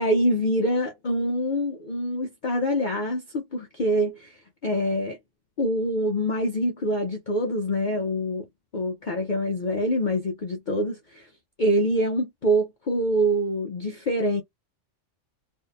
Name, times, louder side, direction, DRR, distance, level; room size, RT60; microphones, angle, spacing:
voice 1, 0.0-4.4 4.6-5.2 5.6-8.4 8.7-11.3 11.6-14.4, equal, 50° left, 0.6 m, -25 dB
2.7 x 2.5 x 2.3 m
omnidirectional pair, 1.3 m